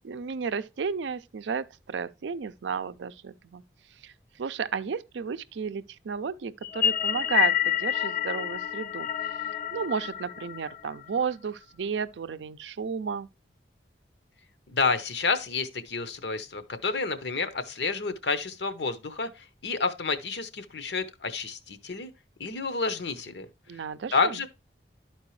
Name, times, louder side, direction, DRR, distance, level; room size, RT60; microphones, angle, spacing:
voice 1, 0.0-3.6 4.0-9.1 9.7-13.3 23.7-24.4, right 6 dB, 85° right, 0.4 m, -33 dB
sound 1, 6.6-11.2, left 11 dB, 45° left, 0.4 m, -28 dB
voice 2, 14.7-22.1 22.4-23.5 24.1-24.5, left 4 dB, 70° left, 0.8 m, -29 dB
11.5 x 4.5 x 3.1 m
head